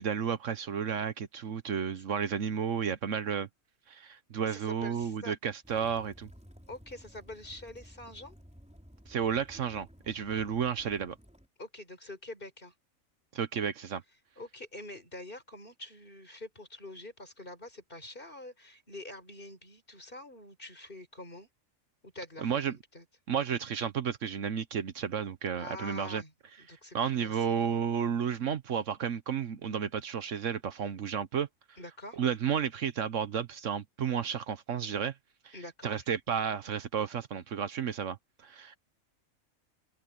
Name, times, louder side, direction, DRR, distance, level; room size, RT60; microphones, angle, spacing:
voice 1, 0.0-3.5 3.9-6.3 9.1-11.2 13.3-14.0 22.4-22.8 23.3-26.2 26.7-31.5 32.2-35.1 35.4-35.5 35.8-38.2 38.4-38.8, right 7 dB, 65° right, 1.3 m, -32 dB
voice 2, 4.4-5.3 6.7-8.4 11.6-12.7 14.4-21.5 22.0-23.0 25.6-26.3 26.6-27.8 31.8-32.2 35.5-36.0, left 1 dB, 40° left, 5.7 m, -46 dB
Waves surf / Splash splatter / Trickle dribble, 5.6-11.5, equal, 5° right, 4.7 m, -54 dB
omnidirectional pair, 1.4 m